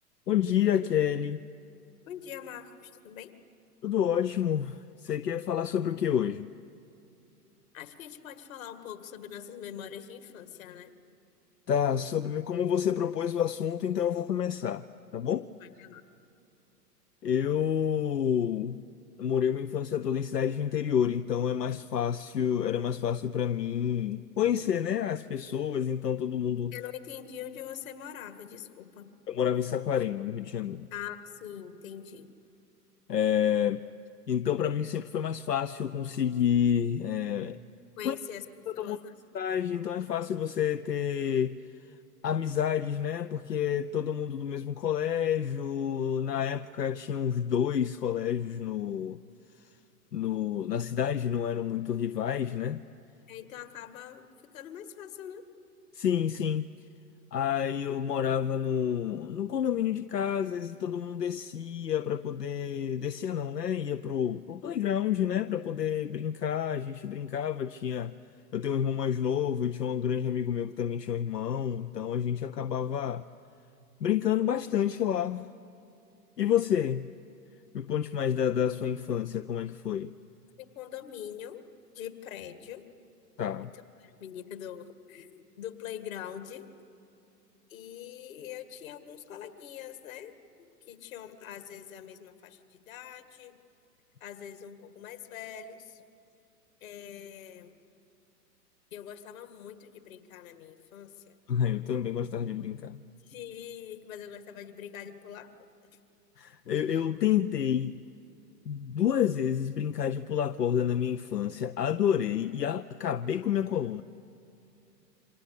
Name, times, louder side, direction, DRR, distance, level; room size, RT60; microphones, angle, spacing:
voice 1, 0.3-1.4 3.8-6.5 11.7-14.9 15.1-15.5 17.2-18.8 19.2-26.7 29.3-30.9 33.1-33.8 34.3-37.6 38.0-38.2 38.7-39.0 39.3-41.6 42.2-49.2 50.1-52.8 55.9-56.7 57.3-68.1 68.5-73.3 74.0-75.5 76.4-77.1 77.7-80.1 83.4-83.7 101.5-103.0 106.4-108.0 108.7-114.0, left 9 dB, 80° left, 0.7 m, -29 dB
voice 2, 2.1-3.3 7.7-10.9 15.6-16.0 26.7-29.1 30.9-32.3 38.0-39.2 53.3-54.3 54.5-55.5 80.6-81.6 81.9-82.8 83.7-86.7 87.7-90.4 90.9-93.6 94.2-96.0 96.8-97.8 98.9-101.4 103.2-105.7, left 9 dB, 55° left, 2.1 m, -43 dB
29.0 x 25.5 x 6.7 m
figure-of-eight pair, 105°, 48 cm